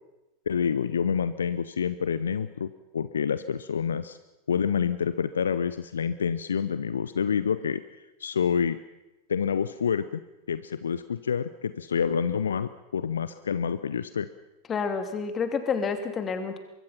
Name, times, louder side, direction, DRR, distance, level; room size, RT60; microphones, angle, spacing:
voice 1, 0.5-4.2 4.5-7.8 8.2-8.8 9.3-10.2 10.5-14.3, left 7 dB, 70° left, 14 dB, 0.7 m, -27 dB
voice 2, 14.7-16.6, left 5 dB, 25° left, 7 dB, 2.8 m, -29 dB
23.5 x 23.5 x 5.9 m, 1.0 s
figure-of-eight pair, 90°, 0 cm